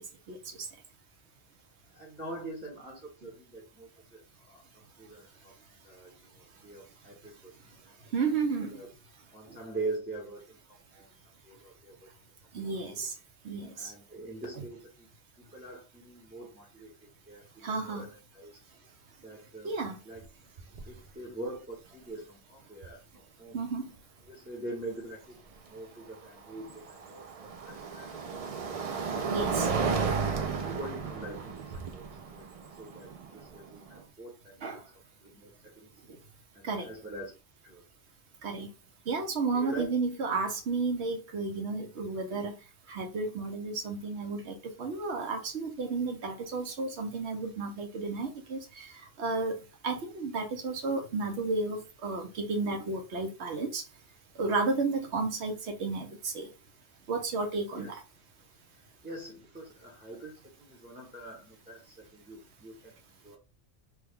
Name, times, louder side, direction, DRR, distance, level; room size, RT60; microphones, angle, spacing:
voice 1, 1.9-5.5 5.8-7.5 7.8-7.9 8.3-8.9 9.3-11.1 11.4-12.1 12.6-12.7 13.0-13.1 13.7-15.1 15.5-18.6 19.2-19.8 20.0-20.3 20.9-23.6 24.3-25.3 25.7-28.9 30.5-32.1 32.3-32.5 32.8-34.8 35.2-35.9 36.5-37.3 37.6-37.8 39.5-39.9 57.8-58.0 59.0-63.0 63.2-63.4, right 2 dB, 10° right, 0.8 m, -44 dB
voice 2, 8.1-8.7 12.5-13.1 13.4-13.9 17.6-18.0 19.6-19.9 23.5-23.9 29.3-29.7 34.6-34.8 36.6-36.9 38.4-38.7 39.1-42.5 42.9-48.9 49.2-49.5 49.8-53.8 54.4-56.5 57.1-58.0, right 3 dB, 75° right, 1.1 m, -32 dB
sound 1, 20.2-20.3 20.6-21.0 22.8-22.9 25.9-34.0, right 5 dB, 55° right, 0.4 m, -34 dB
3.1 x 2.3 x 3.5 m
omnidirectional pair, 1.1 m